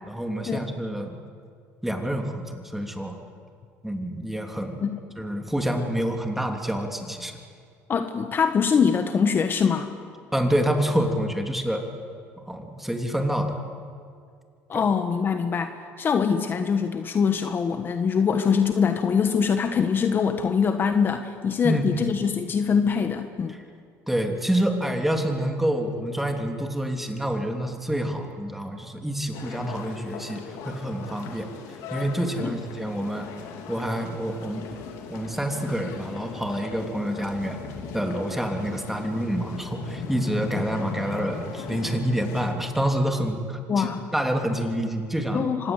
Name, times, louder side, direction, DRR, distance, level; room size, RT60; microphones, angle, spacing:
voice 1, 0.0-1.2 1.8-3.2 3.8-4.9 5.2-7.4 10.3-11.8 12.5-13.6 14.7-14.8 21.6-21.8 24.1-31.5 31.9-33.3 33.7-34.7 35.1-37.6 37.9-45.5, right 1 dB, 5° right, 3 dB, 3.1 m, -27 dB
voice 2, 7.9-9.9 14.7-23.6 32.4-32.5 43.7-44.1 45.3-45.7, left 6 dB, 40° left, 8 dB, 1.3 m, -23 dB
sound 1, 29.3-42.5, left 5 dB, 80° left, 3.2 m, -38 dB
25.5 x 20.0 x 8.2 m, 2.2 s
cardioid pair, 100°, 6 cm